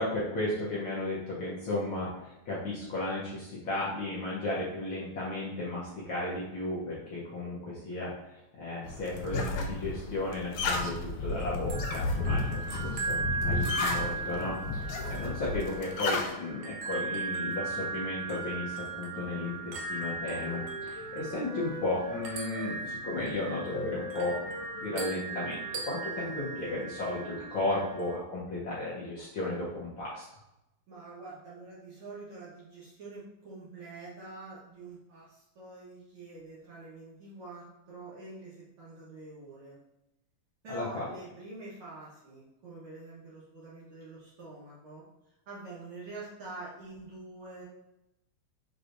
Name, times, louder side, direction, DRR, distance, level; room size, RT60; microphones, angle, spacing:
voice 1, 0.0-13.2 13.4-30.2 40.7-41.1, left 2 dB, 60° left, -8 dB, 1.4 m, -34 dB
sound 1, 8.8-16.3, left 3 dB, 80° left, 2.0 m, -33 dB
sound 2, 11.3-28.2, right 4 dB, 85° right, 1.1 m, -38 dB
Wind instrument woodwind instrument, 18.8-22.8 23.1-27.6, left 1 dB, 35° right, 1.4 m, -45 dB
voice 2, 30.9-39.8 40.6-45.0 45.5-47.6, right 2 dB, 55° right, -7 dB, 1.7 m, -46 dB
6.0 x 3.2 x 2.6 m, 0.89 s
omnidirectional pair, 3.3 m